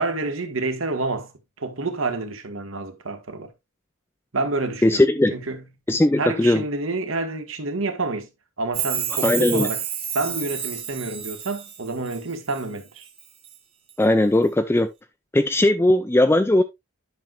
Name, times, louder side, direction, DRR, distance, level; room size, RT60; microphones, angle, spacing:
voice 1, 0.0-1.3 1.6-3.5 4.3-5.0 5.3-5.7 6.2-8.3 8.6-9.8 10.1-13.1, right 3 dB, 75° right, 1.4 m, -28 dB
voice 2, 4.8-5.4 5.9-6.6 9.2-9.7 14.0-14.9 15.3-16.6, left 1 dB, 10° left, 0.4 m, -18 dB
Chime, 8.7-12.6 13.0-13.6 13.9-14.0, right 9 dB, 25° right, 1.0 m, -30 dB
10.5 x 6.0 x 2.3 m
head